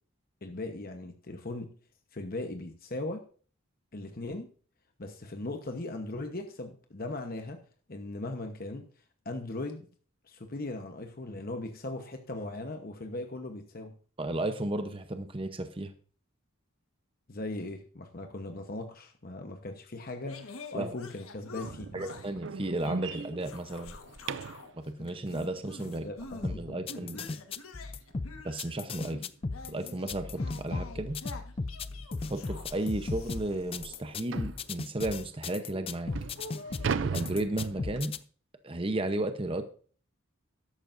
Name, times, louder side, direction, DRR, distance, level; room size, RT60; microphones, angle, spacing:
voice 1, 0.4-1.7 2.1-3.3 3.9-4.5 5.0-7.6 7.9-8.8 9.2-9.9 10.3-13.9 17.3-22.1 26.0-27.4, left 2 dB, 45° left, 5 dB, 1.0 m, -39 dB
voice 2, 14.2-15.9 20.7-20.9 21.9-24.0 24.7-26.1 26.4-27.2 28.4-29.2 29.7-31.2 32.3-36.1 37.0-38.1 38.6-39.6, right 1 dB, 25° right, 8 dB, 0.8 m, -33 dB
sound 1, 20.3-22.4 22.8-24.7 25.0-26.5 26.9-34.9 35.6-37.0, left 3 dB, 85° left, 1.4 m, -47 dB
sound 2, 21.6-24.7 27.5-27.6 28.1-28.3 28.6-28.7 29.2-29.3 30.4-30.6 30.9-31.1 31.8-31.9 32.2-32.3 32.8-32.9 34.3-34.6 35.3-35.4 35.9-38.2, right 5 dB, 60° right, 0.4 m, -37 dB
sound 3, 26.4-38.2, left 3 dB, 25° left, 0.4 m, -36 dB
13.5 x 11.5 x 2.6 m, 0.42 s
head